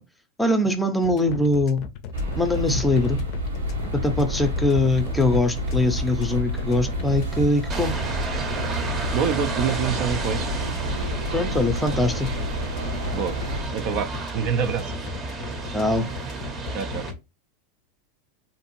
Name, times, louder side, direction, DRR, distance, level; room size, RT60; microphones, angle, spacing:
voice 1, 0.4-1.8 2.4-3.2 4.0-7.9 11.3-12.3 15.7-16.1, left 2 dB, 5° left, 0.6 m, -22 dB
sound 1, 1.0-17.1, left 6 dB, 50° left, 0.5 m, -37 dB
sound 2, 2.1-13.6, right 1 dB, 90° right, 1.1 m, -29 dB
sound 3, 7.7-17.1, right 3 dB, 30° right, 0.8 m, -32 dB
voice 2, 9.1-10.5 13.1-13.4 13.7-14.9 16.7-17.0, right 7 dB, 55° right, 0.4 m, -26 dB
2.7 x 2.4 x 2.8 m
hypercardioid pair, 105°, 0 cm